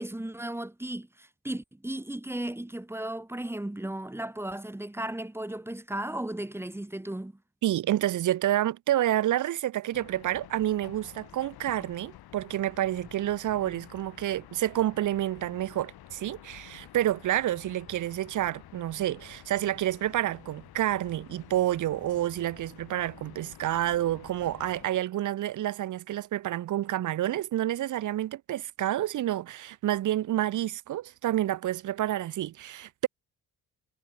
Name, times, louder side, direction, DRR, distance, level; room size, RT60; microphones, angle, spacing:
voice 1, 0.0-7.3, right 1 dB, 5° right, 0.9 m, -35 dB
voice 2, 7.6-33.1, right 13 dB, 55° right, 0.6 m, -29 dB
sound 1, 9.9-24.9, left 12 dB, 80° left, 7.1 m, -50 dB
cardioid pair, 75°, 37 cm